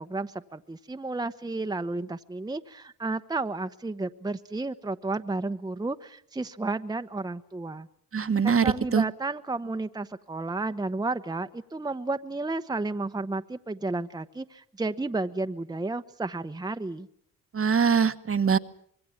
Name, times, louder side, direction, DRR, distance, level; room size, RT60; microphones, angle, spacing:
voice 1, 0.0-7.9 8.4-17.1, right 3 dB, 10° right, 8 dB, 1.0 m, -32 dB
voice 2, 8.1-9.0 17.5-18.6, right 6 dB, 35° right, 11 dB, 1.3 m, -23 dB
25.5 x 22.0 x 7.3 m, 0.67 s
supercardioid pair, 60°, 36 cm